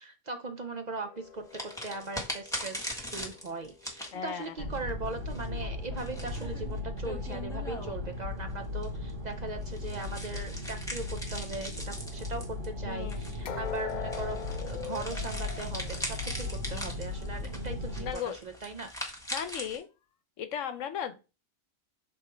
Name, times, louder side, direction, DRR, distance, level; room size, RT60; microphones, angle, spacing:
voice 1, 0.0-18.9, right 3 dB, 45° right, 7 dB, 0.6 m, -39 dB
sound 1, 1.0-4.1 13.4-17.4 17.7-17.9 18.5-18.6, left 8 dB, 60° left, 0.4 m, -43 dB
sound 2, 1.5-8.1 8.7-19.8, equal, 5° left, 1.5 m, -41 dB
voice 2, 4.1-4.5 12.9-13.3 16.7-17.1 18.0-18.4 19.3-19.9 20.4-21.1, left 8 dB, 85° left, 10 dB, 1.1 m, -36 dB
sound 3, 4.6-18.1, left 2 dB, 85° right, 1.5 m, -37 dB
6.5 x 3.5 x 4.4 m, 0.30 s
omnidirectional pair, 1.3 m